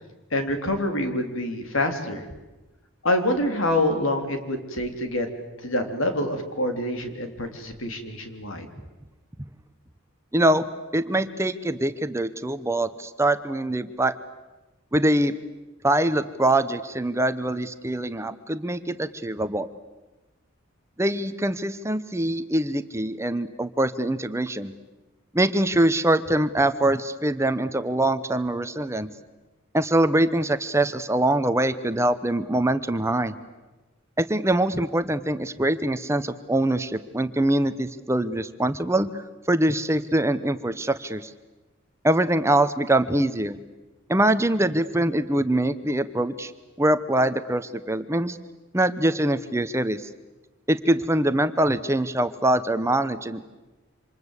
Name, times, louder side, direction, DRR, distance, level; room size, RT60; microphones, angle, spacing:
voice 1, 0.3-2.2 3.0-5.3 5.6-8.7, left 1 dB, 75° left, 6 dB, 3.5 m, -26 dB
voice 2, 10.3-10.7 10.9-14.2 14.9-15.3 15.8-19.7 21.0-24.7 25.3-29.1 29.7-33.3 34.2-41.3 42.0-43.6 44.1-46.5 46.8-48.4 48.7-50.1 50.7-53.4, right 1 dB, 15° right, 11 dB, 0.9 m, -23 dB
27.5 x 26.0 x 8.2 m, 1.1 s
head